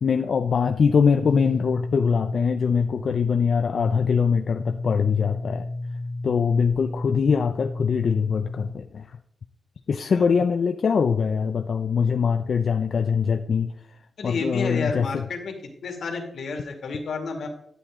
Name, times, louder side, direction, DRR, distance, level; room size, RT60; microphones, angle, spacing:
voice 1, 0.0-5.7 6.2-9.1 9.9-13.7 14.2-15.2, left 6 dB, 60° left, 6 dB, 0.5 m, -23 dB
sound 1, 1.2-8.7, left 2 dB, 20° left, 1.0 m, -32 dB
voice 2, 14.2-15.5 15.8-17.5, left 4 dB, 80° left, 3 dB, 2.2 m, -30 dB
11.5 x 8.1 x 3.7 m, 0.71 s
wide cardioid pair, 130°, 0 cm